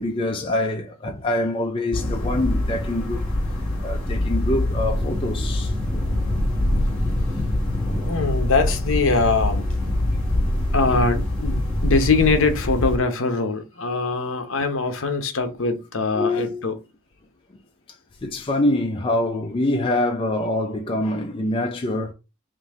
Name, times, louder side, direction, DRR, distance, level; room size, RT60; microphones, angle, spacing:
voice 1, 0.0-3.2 3.7-5.7 6.7-6.8 7.9-8.1 10.5-11.0 16.1-16.6 18.2-22.1, left 1 dB, 25° left, 0.4 m, -25 dB
sound 1, 1.9-13.0, left 1 dB, 5° left, 1.7 m, -24 dB
voice 2, 8.0-9.6 10.7-16.7, left 3 dB, 65° left, 0.8 m, -22 dB
3.8 x 2.6 x 4.6 m
head